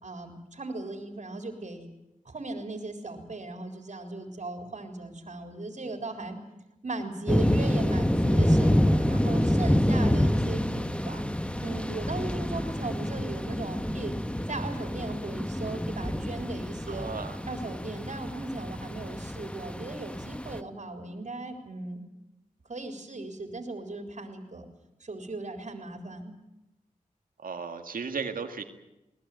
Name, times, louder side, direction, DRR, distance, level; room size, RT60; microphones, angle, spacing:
voice 1, 0.0-1.9 2.3-6.4 6.8-11.2 11.6-14.1 14.5-17.1 17.5-22.0 22.6-24.6 25.0-26.3, right 2 dB, 55° right, 4 dB, 3.8 m, -37 dB
sound 1, 7.3-20.6, equal, 10° left, 1.3 m, -27 dB
voice 2, 16.9-17.4 27.4-28.6, right 5 dB, 80° right, 6 dB, 2.0 m, -35 dB
20.5 x 19.5 x 9.3 m, 0.95 s
cardioid pair, 45°, 14 cm